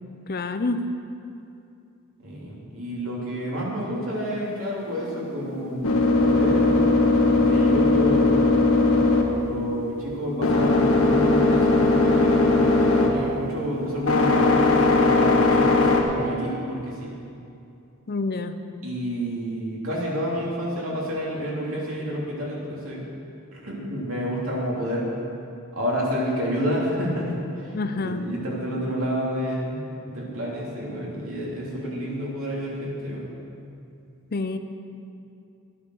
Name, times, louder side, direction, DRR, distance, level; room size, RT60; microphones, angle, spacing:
voice 1, 0.3-0.9 18.1-18.6 27.7-28.2 34.3-34.6, left 3 dB, 45° left, 9 dB, 0.6 m, -27 dB
voice 2, 2.2-5.9 6.2-6.9 7.3-8.5 9.2-17.1 18.8-23.0 23.5-25.1 25.7-29.8 30.1-33.3, equal, 65° right, -4 dB, 3.3 m, -29 dB
sound 1, 4.9-16.0, left 2 dB, 70° left, 1.6 m, -20 dB
13.0 x 9.7 x 6.4 m, 2.6 s
head